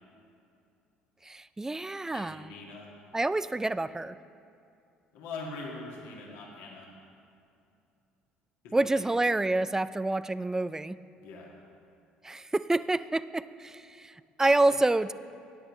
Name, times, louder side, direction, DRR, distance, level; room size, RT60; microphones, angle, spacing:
voice 1, 1.2-2.5 3.1-4.2 8.7-11.0 12.2-15.1, right 2 dB, 10° right, 15 dB, 0.3 m, -28 dB
voice 2, 2.1-2.9 5.1-6.9 8.6-9.1 11.2-11.5 14.7-14.8, left 3 dB, 65° left, -2 dB, 1.7 m, -42 dB
14.5 x 10.0 x 3.1 m, 2.5 s
hypercardioid pair, 60°, 4 cm